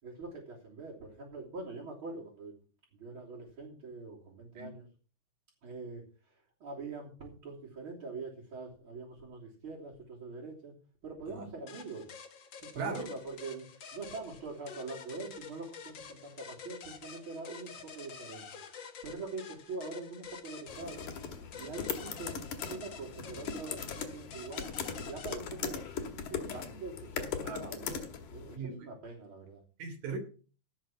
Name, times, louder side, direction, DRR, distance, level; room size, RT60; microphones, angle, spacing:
voice 1, 0.0-2.5 2.9-4.9 5.6-10.7 11.0-12.1 12.6-18.5 19.0-21.1 21.6-22.4 22.7-24.7 25.0-28.0 28.3-29.6, right 3 dB, 40° right, 3.9 m, -44 dB
sound 1, 11.7-25.4, left 6 dB, 50° left, 1.5 m, -48 dB
voice 2, 12.8-13.1 27.5-27.7 28.5-28.8 29.8-30.2, right 4 dB, 85° right, 4.8 m, -38 dB
sound 2, 20.7-28.6, left 6 dB, 75° left, 3.2 m, -39 dB
17.0 x 6.7 x 6.1 m
omnidirectional pair, 3.7 m